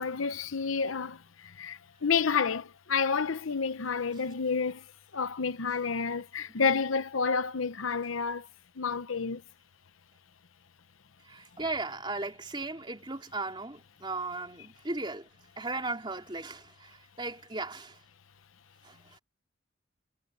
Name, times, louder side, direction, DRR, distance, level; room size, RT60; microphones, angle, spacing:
voice 1, 0.0-4.8 5.1-8.5 8.8-9.4, left 5 dB, 90° left, 0.9 m, -30 dB
voice 2, 11.2-15.3 15.6-18.0 18.8-19.2, right 3 dB, 25° right, 3.6 m, -37 dB
head